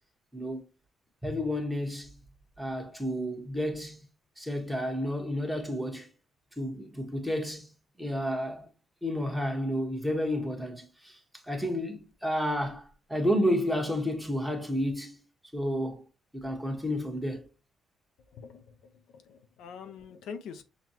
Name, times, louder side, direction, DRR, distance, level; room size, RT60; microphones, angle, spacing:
voice 1, 0.3-0.6 1.2-2.1 2.6-4.0 4.4-6.1 6.6-7.7 8.0-8.7 9.0-11.2 11.4-15.2 15.5-16.0 16.3-17.4, equal, 5° right, 1.1 m, -31 dB
voice 2, 18.3-18.6 19.1-20.6, left 6 dB, 85° left, 0.5 m, -44 dB
5.9 x 2.3 x 2.8 m
cardioid pair, 90°, 0 cm